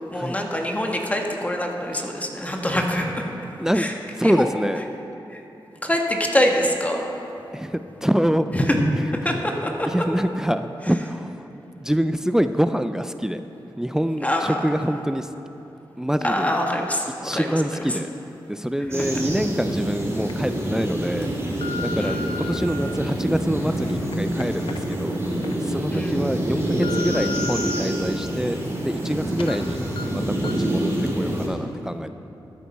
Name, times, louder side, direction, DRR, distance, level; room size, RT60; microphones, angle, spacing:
voice 1, 0.1-3.2 3.7-3.9 4.2-4.5 5.3-5.4 5.8-7.0 8.5-8.8 9.2-9.3 9.6-9.9 14.2-14.6 16.2-17.5 22.0-22.2 25.9-26.3 29.4-29.5, left 1 dB, 15° left, 1 dB, 1.3 m, -24 dB
voice 2, 4.2-4.8 7.5-8.5 8.9-9.4 9.9-11.5 11.8-15.3 16.0-16.6 17.2-18.1 18.5-21.3 21.8-25.2 25.6-29.8 30.1-32.1, equal, 5° right, 10 dB, 0.4 m, -25 dB
sound 1, 18.9-31.5, right 1 dB, 30° right, 2.9 m, -26 dB
sound 2, 19.3-19.4 20.0-20.3 21.0-22.6 23.2-25.5 26.0-26.1 26.5-27.8 28.2-29.1 29.4-29.6 30.0-30.1 30.4-30.7 31.1-31.2, left 5 dB, 80° left, 0.6 m, -36 dB
13.5 x 9.1 x 4.2 m, 3.0 s
cardioid pair, 60°, 9 cm